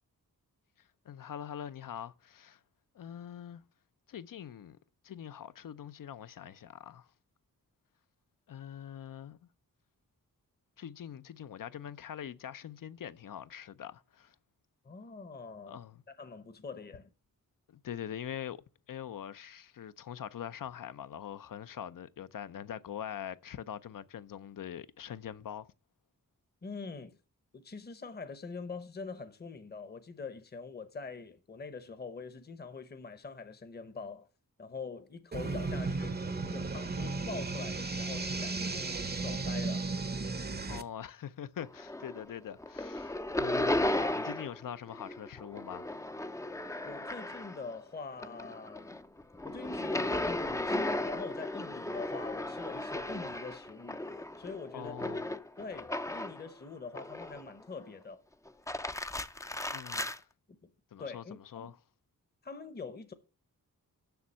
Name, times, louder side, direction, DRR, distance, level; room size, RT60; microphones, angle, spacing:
voice 1, 0.8-2.6 2.9-3.6 4.1-4.8 5.0-7.1 8.5-9.5 10.8-14.4 15.6-16.0 17.7-25.7 40.7-45.9 54.7-55.3 59.7-60.3 60.9-61.8, left 9 dB, 65° left, 0.6 m, -43 dB
voice 2, 14.8-15.8 16.1-17.1 26.6-27.2 27.5-34.3 34.6-39.9 46.8-48.9 49.4-54.0 54.4-54.9 55.6-58.2 60.6-60.7 61.0-61.7 62.4-63.1, left 4 dB, 30° left, 0.8 m, -44 dB
sound 1, 35.3-40.8, right 3 dB, 30° right, 0.7 m, -35 dB
sound 2, 41.6-42.3 42.6-44.6 44.9-47.8 48.1-56.5 56.9-57.6 58.5-60.2, left 1 dB, 10° left, 0.4 m, -35 dB
7.0 x 6.2 x 7.4 m
wide cardioid pair, 100°, 35 cm